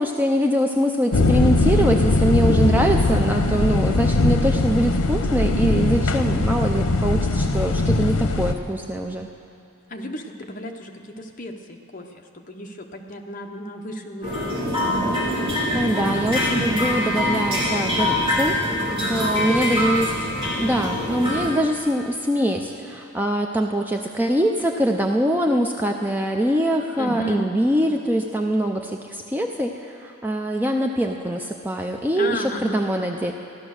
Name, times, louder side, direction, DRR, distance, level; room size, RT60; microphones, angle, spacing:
voice 1, 0.0-9.3 15.4-18.6 19.1-20.1 20.6-33.3, equal, 10° right, 2 dB, 0.5 m, -23 dB
sound 1, 1.1-8.5, left 2 dB, 90° left, 0.8 m, -20 dB
voice 2, 9.9-14.5 18.9-19.7 20.5-20.9 27.0-27.5 32.1-32.8, equal, 35° left, 3 dB, 0.9 m, -33 dB
sound 2, 14.2-21.5, left 1 dB, 25° right, 3.4 m, -24 dB
15.0 x 12.0 x 6.4 m, 2.6 s
head